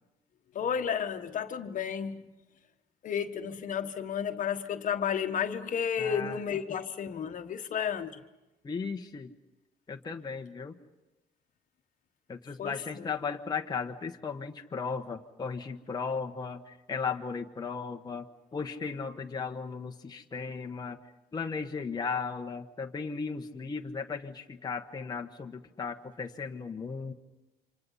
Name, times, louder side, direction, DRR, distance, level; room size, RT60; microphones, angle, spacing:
voice 1, 0.5-2.2 3.0-8.2 12.6-13.1, left 7 dB, 50° left, 1.4 m, -32 dB
voice 2, 6.0-6.4 8.6-9.3 9.9-10.8 12.3-18.2 18.5-21.0 21.3-27.1, left 5 dB, 25° left, 1.2 m, -36 dB
29.0 x 26.0 x 5.6 m
cardioid pair, 110°, 17 cm